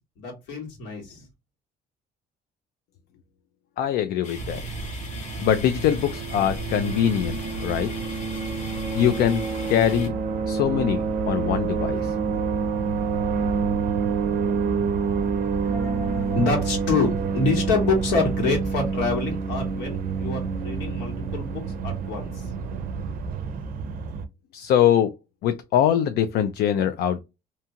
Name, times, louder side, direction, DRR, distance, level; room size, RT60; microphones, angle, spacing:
voice 1, 0.2-1.2 15.6-22.3, left 3 dB, 85° left, 1.6 m, -26 dB
voice 2, 3.8-4.6 5.4-7.9 8.9-9.4 9.7-10.1 10.5-12.1 24.5-25.1 25.4-27.2, left 10 dB, 70° left, 0.4 m, -22 dB
sound 1, 4.2-10.1, left 4 dB, 45° left, 0.9 m, -41 dB
sound 2, 4.4-24.2, right 5 dB, 55° right, 0.5 m, -28 dB
2.7 x 2.3 x 2.8 m
cardioid pair, 110°, 17 cm